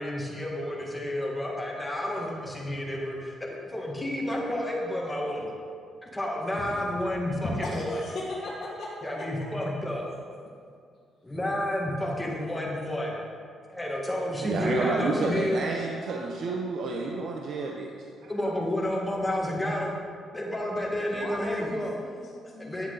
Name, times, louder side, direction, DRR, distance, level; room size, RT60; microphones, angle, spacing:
voice 1, 0.0-3.2 3.6-5.5 6.0-8.0 9.0-10.1 11.2-13.2 13.7-15.6 18.3-19.9 20.3-22.0 22.6-22.9, left 1 dB, 10° left, -2 dB, 2.0 m, -30 dB
voice 2, 7.2-8.9 9.2-9.6 21.1-22.9, left 2 dB, 40° left, -7 dB, 1.7 m, -38 dB
voice 3, 14.3-17.9 18.2-18.3, right 3 dB, 65° right, 0 dB, 0.8 m, -30 dB
10.0 x 7.7 x 4.0 m, 2.2 s
cardioid pair, 90°, 0 cm